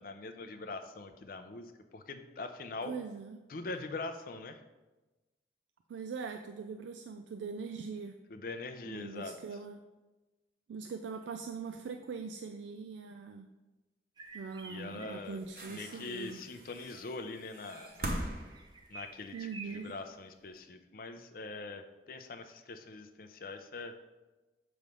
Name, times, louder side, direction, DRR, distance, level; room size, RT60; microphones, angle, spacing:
voice 1, 0.0-2.9 3.5-4.6 8.3-9.6 14.7-15.4 15.7-18.2 18.9-24.0, left 3 dB, 50° left, 7 dB, 0.5 m, -43 dB
voice 2, 2.8-3.4 5.9-8.2 8.9-9.8 10.7-13.5 14.3-16.4 19.3-20.0, right 5 dB, 80° right, 6 dB, 0.3 m, -42 dB
sound 1, 14.2-15.4 16.2-16.3 16.7-20.0, right 3 dB, 25° right, 0.5 m, -51 dB
sound 2, 15.3-19.6 20.6-20.7, right 1 dB, 55° right, 0.8 m, -42 dB
6.8 x 3.2 x 5.2 m, 1.1 s
head